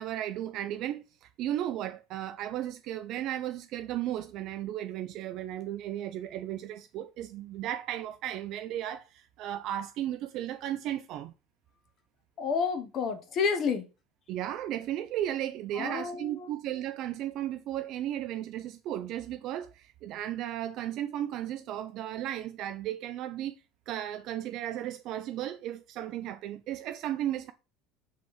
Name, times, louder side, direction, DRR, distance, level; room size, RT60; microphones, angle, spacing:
voice 1, 0.0-11.3 14.3-23.6 23.9-27.5, right 12 dB, 55° right, 0.3 m, -35 dB
voice 2, 12.4-13.9 15.7-16.5, left 5 dB, 40° left, 0.7 m, -30 dB
5.2 x 3.2 x 3.0 m
supercardioid pair, 125°, 0 cm